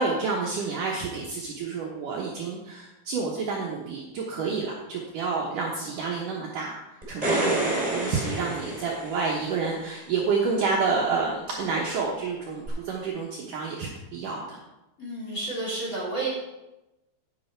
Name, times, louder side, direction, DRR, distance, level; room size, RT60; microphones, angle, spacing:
voice 1, 0.0-14.6, right 4 dB, 85° right, -2 dB, 1.8 m, -29 dB
sound 1, 7.0-9.6 12.7-12.8, right 2 dB, 10° right, 2.3 m, -28 dB
voice 2, 15.0-16.3, right 2 dB, 20° left, -5 dB, 2.9 m, -31 dB
10.0 x 8.9 x 4.5 m, 0.99 s
omnidirectional pair, 5.4 m